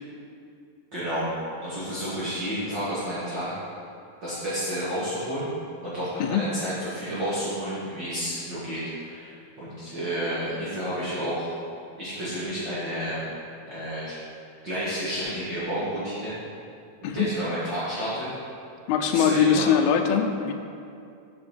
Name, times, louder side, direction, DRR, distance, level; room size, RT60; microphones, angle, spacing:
voice 1, 0.9-1.3 1.6-3.5 4.2-5.5 5.8-11.5 12.0-13.2 13.7-14.2 14.6-16.3 17.0-18.3 19.1-19.7, equal, 50° right, -12 dB, 1.3 m, -31 dB
voice 2, 18.9-20.5, left 7 dB, 80° left, 5 dB, 2.3 m, -22 dB
8.0 x 6.0 x 4.3 m, 2.4 s
omnidirectional pair, 4.6 m